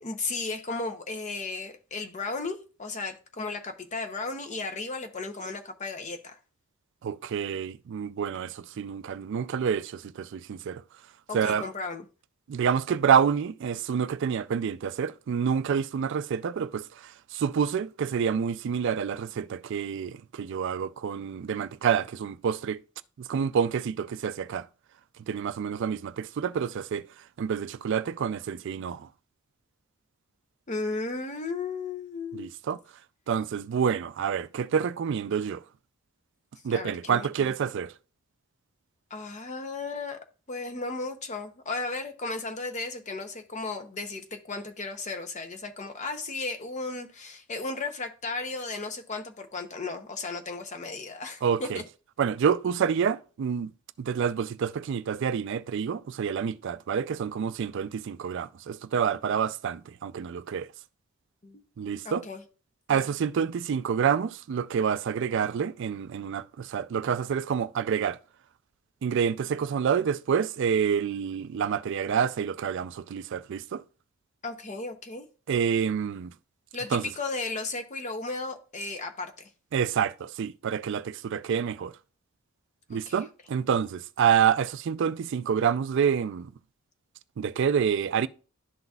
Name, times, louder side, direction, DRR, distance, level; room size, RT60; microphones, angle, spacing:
voice 1, 0.0-6.4 11.3-12.1 30.7-32.5 36.7-37.5 39.1-40.2 40.5-51.8 61.4-61.6 62.0-62.4 62.9-63.1 74.4-75.3 76.7-79.5 82.9-83.3, left 3 dB, 35° left, 0.7 m, -35 dB
voice 2, 7.0-10.8 11.3-11.7 12.5-16.8 17.3-22.8 23.2-24.6 25.3-27.0 27.4-29.1 32.3-32.8 33.3-35.6 36.6-37.9 51.4-51.8 52.2-53.7 54.0-60.7 61.8-62.2 62.9-68.2 69.0-73.8 75.5-76.3 76.9-77.0 79.7-81.9 82.9-86.5 87.4-88.3, right 7 dB, 55° right, 0.3 m, -28 dB
11.5 x 4.0 x 2.3 m
head